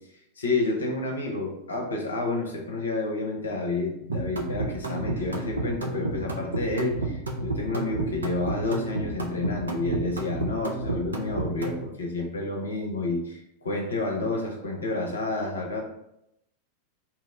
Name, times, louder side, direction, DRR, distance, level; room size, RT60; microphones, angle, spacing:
voice 1, 0.4-15.8, left 2 dB, 75° left, 1 dB, 0.5 m, -29 dB
sound 1, 4.1-11.8, right 2 dB, 75° right, 0.4 m, -31 dB
2.8 x 2.0 x 3.4 m, 0.81 s
figure-of-eight pair, 90°, 0 cm